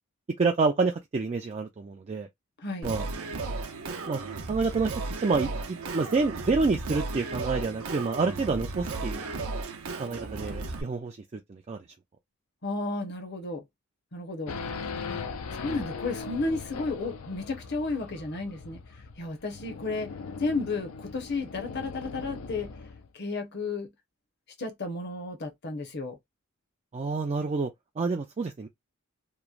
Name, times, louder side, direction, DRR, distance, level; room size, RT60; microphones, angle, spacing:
voice 1, 0.4-2.3 2.8-3.1 4.1-4.2 4.5-5.5 5.9-9.3 10.0-11.8 26.9-27.7 28.0-28.7, right 4 dB, 30° right, 0.3 m, -28 dB
voice 2, 2.6-2.9 12.6-13.6 14.1-14.5 15.1-15.2 15.5-18.8 19.2-20.1 20.4-22.7 23.1-23.9 24.6-26.2, left 3 dB, 50° left, 0.8 m, -33 dB
Singing, 2.8-10.8, right 3 dB, 80° right, 0.6 m, -35 dB
Race car auto racing / Idling / Accelerating revving vroom, 14.5-23.1, left 5 dB, 85° left, 0.5 m, -39 dB
3.0 x 2.1 x 2.4 m
head